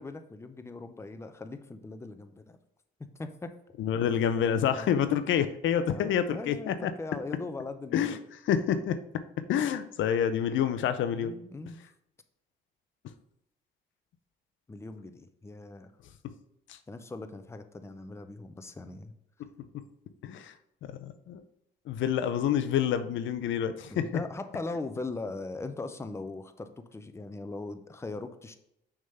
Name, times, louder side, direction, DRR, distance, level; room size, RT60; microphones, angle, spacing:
voice 1, 0.0-2.6 3.0-3.5 4.7-5.0 5.9-8.2 11.1-11.8 14.7-15.9 16.9-19.1 23.9-28.6, left 3 dB, 15° left, 8 dB, 0.6 m, -40 dB
voice 2, 3.8-6.9 7.9-8.2 8.5-11.3 16.7-16.8 20.2-20.5 20.8-21.4 21.9-24.1, left 9 dB, 75° left, 11 dB, 0.6 m, -28 dB
6.3 x 3.6 x 5.5 m, 0.78 s
cardioid pair, 90°, 20 cm